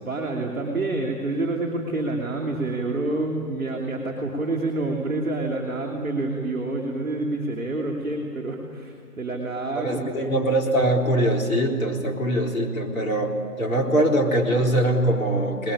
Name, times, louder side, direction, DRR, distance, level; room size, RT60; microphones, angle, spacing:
voice 1, 0.0-10.3, right 2 dB, 5° left, -11 dB, 1.4 m, -28 dB
voice 2, 9.8-15.7, right 1 dB, 60° left, 0 dB, 4.0 m, -22 dB
22.5 x 20.5 x 10.0 m, 2.3 s
hypercardioid pair, 175°, 46 cm